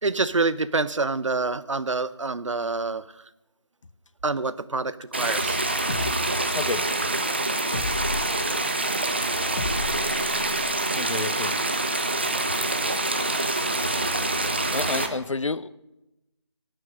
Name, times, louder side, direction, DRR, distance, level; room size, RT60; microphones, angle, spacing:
voice 1, 0.0-3.2 4.2-5.6, right 3 dB, 85° right, 16 dB, 0.7 m, -27 dB
sound 1, 5.1-15.1, right 2 dB, 20° right, 0.5 m, -26 dB
sound 2, 5.9-6.1 7.7-8.3 9.6-10.7, left 3 dB, 45° left, 1.2 m, -32 dB
voice 2, 6.5-6.9 11.0-11.6 14.7-15.7, left 3 dB, 90° left, 18 dB, 0.6 m, -29 dB
18.5 x 6.5 x 5.4 m, 0.96 s
figure-of-eight pair, 170°, 16 cm